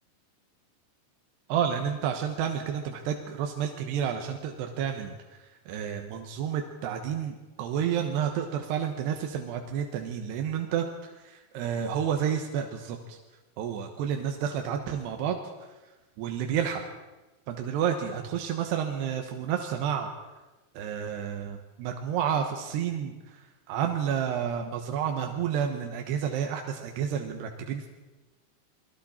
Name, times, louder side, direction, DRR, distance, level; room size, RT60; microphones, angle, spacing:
voice 1, 1.5-13.2 13.6-15.4 16.2-16.8 17.5-20.1 20.7-27.9, right 8 dB, 85° right, 4 dB, 3.3 m, -30 dB
29.0 x 21.5 x 4.4 m, 1.2 s
omnidirectional pair, 4.6 m